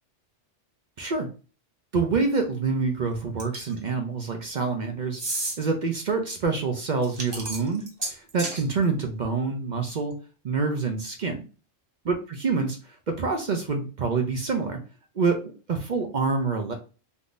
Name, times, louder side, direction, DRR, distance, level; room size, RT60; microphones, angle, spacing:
voice 1, 1.0-1.3 1.9-5.2 5.6-7.8 8.1-10.1 10.4-11.4 12.1-12.8 13.1-14.8 15.2-16.7, right 4 dB, 55° right, 4 dB, 0.5 m, -26 dB
sound 1, 3.4-3.8 5.1-5.6 7.0-8.6, right 2 dB, 25° right, 0.8 m, -31 dB
3.5 x 2.6 x 2.4 m, 0.35 s
omnidirectional pair, 1.2 m